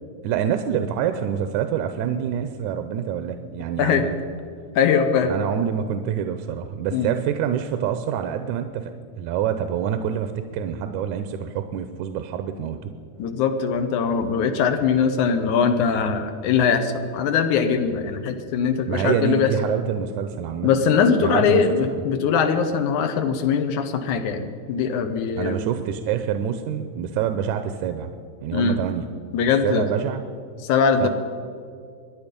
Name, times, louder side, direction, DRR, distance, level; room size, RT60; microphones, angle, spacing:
voice 1, 0.2-4.1 5.3-8.9 9.2-12.9 18.9-20.7 21.2-22.0 25.4-28.1 28.4-29.1 29.6-30.2 31.0-31.1, right 9 dB, 85° right, 8 dB, 2.1 m, -26 dB
voice 2, 4.8-5.3 6.9-7.1 13.2-19.5 20.6-25.6 28.5-28.8 29.3-29.9 30.6-31.1, left 6 dB, 85° left, 7 dB, 2.4 m, -21 dB
24.0 x 10.0 x 5.2 m, 2.2 s
omnidirectional pair, 3.4 m